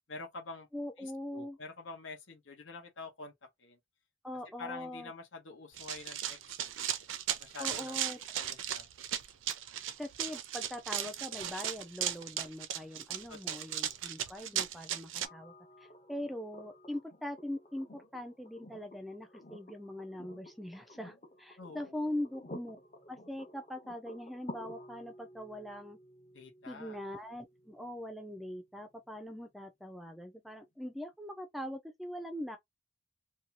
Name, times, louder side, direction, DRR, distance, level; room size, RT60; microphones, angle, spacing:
voice 1, 0.1-0.7 1.0-3.3 3.6-3.8 4.6-6.8 7.4-8.9 13.3-14.0 21.6-22.0 26.3-27.0, left 3 dB, 80° left, 0.9 m, -47 dB
voice 2, 0.7-1.6 4.2-5.1 7.6-8.2 10.0-22.8 23.1-26.0 26.7-32.6, left 1 dB, ahead, 0.3 m, -42 dB
Run, 5.8-15.3, right 10 dB, 80° right, 0.5 m, -36 dB
sound 1, 15.2-29.2 30.9-31.0, left 1 dB, 35° left, 0.7 m, -53 dB
2.7 x 2.2 x 2.8 m
head